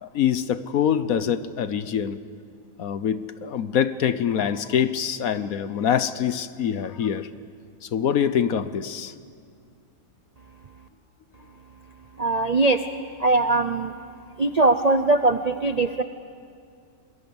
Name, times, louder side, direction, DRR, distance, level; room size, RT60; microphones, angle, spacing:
voice 1, 0.0-2.2 2.8-7.3 7.9-9.1, left 8 dB, 65° left, 13 dB, 1.2 m, -24 dB
voice 2, 12.2-12.8 13.2-13.9 14.4-16.0, right 2 dB, 45° right, 8 dB, 0.5 m, -21 dB
27.5 x 22.0 x 7.1 m, 2.2 s
omnidirectional pair, 1.8 m